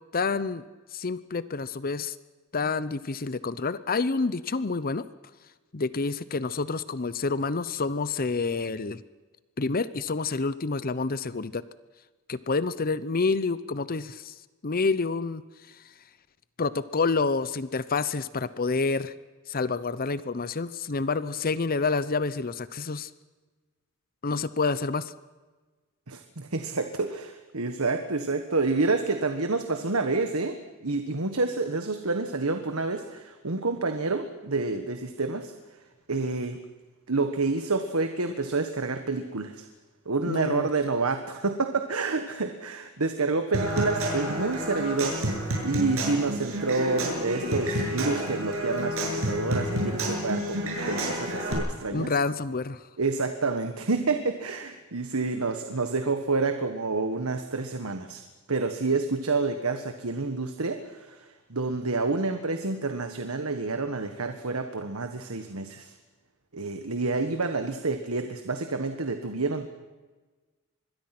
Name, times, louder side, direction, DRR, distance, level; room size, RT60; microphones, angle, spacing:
voice 1, 0.1-0.6 0.9-2.1 2.5-5.0 5.7-9.0 9.6-11.6 12.3-14.3 14.6-15.4 16.6-19.1 19.5-23.1 24.2-25.1 40.3-40.7 51.9-52.8, left 4 dB, 45° left, 15 dB, 0.8 m, -28 dB
voice 2, 26.1-30.6 30.8-35.5 36.1-36.6 37.1-39.6 40.0-45.2 45.6-52.1 53.0-58.2 58.5-65.9 66.5-69.7, right 3 dB, 85° right, 7 dB, 1.5 m, -28 dB
Human voice / Acoustic guitar / Percussion, 43.5-51.5, right 1 dB, 70° right, 7.7 m, -30 dB
25.0 x 21.5 x 6.0 m, 1.3 s
head